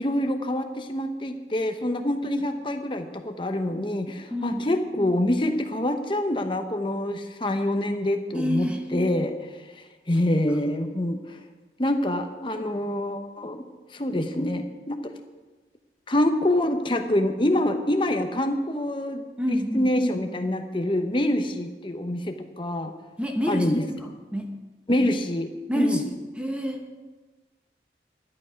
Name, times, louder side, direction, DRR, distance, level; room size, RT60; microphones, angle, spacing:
voice 1, 0.0-9.3 9.8-11.4 11.8-13.6 13.9-15.1 16.1-22.9 23.5-24.0 24.9-26.1, left 1 dB, 30° left, 6 dB, 0.9 m, -26 dB
voice 2, 4.3-4.6 8.3-8.8 19.4-19.9 23.2-23.7 24.0-24.5 25.7-27.0, equal, 5° right, 3 dB, 1.2 m, -28 dB
11.5 x 11.0 x 5.2 m, 1.3 s
head